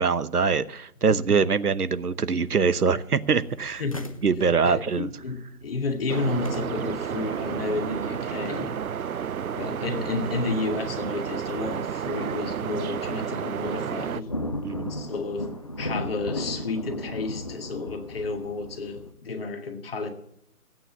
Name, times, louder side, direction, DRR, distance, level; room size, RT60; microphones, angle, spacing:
voice 1, 0.0-3.8 4.2-5.1 14.6-14.9, right 5 dB, 85° right, 15 dB, 1.0 m, -23 dB
sound 1, 2.4-10.4 10.7-10.8 11.4-11.7 12.1-12.5 12.9-13.0 13.3-19.1, left 1 dB, 25° left, 0.6 m, -37 dB
voice 2, 3.8-4.1 4.6-8.7 9.5-14.3 14.9-15.5 15.8-20.1, left 3 dB, 40° left, 4 dB, 2.0 m, -31 dB
sound 2, 6.1-14.2, right 8 dB, 70° right, 0.6 m, -31 dB
16.5 x 9.1 x 7.1 m, 0.74 s
figure-of-eight pair, 150°, 45 cm